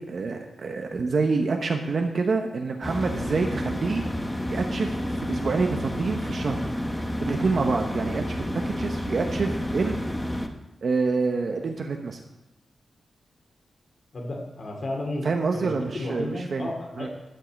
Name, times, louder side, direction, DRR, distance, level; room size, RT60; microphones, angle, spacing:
voice 1, 0.0-4.1 4.5-6.7 7.2-10.0 10.8-12.2 15.2-17.1, right 4 dB, 45° right, 3 dB, 0.9 m, -27 dB
sound 1, 2.8-10.5, equal, 10° left, 0.8 m, -30 dB
voice 2, 14.1-15.2 15.5-15.7 15.9-17.1, left 2 dB, 45° left, 0 dB, 2.4 m, -32 dB
12.5 x 5.5 x 8.0 m, 0.96 s
wide cardioid pair, 180°, 0 cm